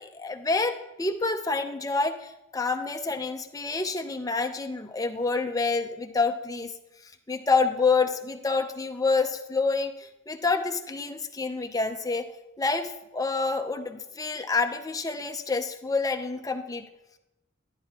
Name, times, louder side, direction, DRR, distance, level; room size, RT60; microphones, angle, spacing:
voice 1, 0.0-6.7 7.3-12.3 12.6-16.8, left 4 dB, 20° left, 6 dB, 0.6 m, -28 dB
11.5 x 10.5 x 2.9 m, 0.92 s
head